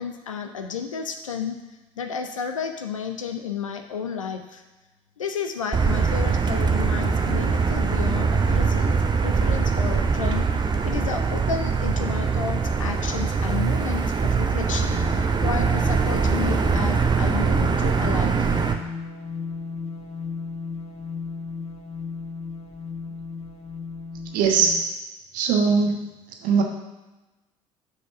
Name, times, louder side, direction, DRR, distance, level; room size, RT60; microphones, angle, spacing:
voice 1, 0.0-1.6 2.0-4.6 5.2-18.6, left 6 dB, 80° left, 6 dB, 0.6 m, -32 dB
Motor vehicle (road), 5.7-18.7, right 5 dB, 25° right, 0.8 m, -22 dB
sound 1, 14.6-24.8, left 4 dB, 40° left, 0.9 m, -35 dB
voice 2, 24.3-24.7 25.3-26.0 26.4-26.6, right 5 dB, 60° right, 2 dB, 1.2 m, -20 dB
5.9 x 5.0 x 6.7 m, 1.1 s
figure-of-eight pair, 55°, 16 cm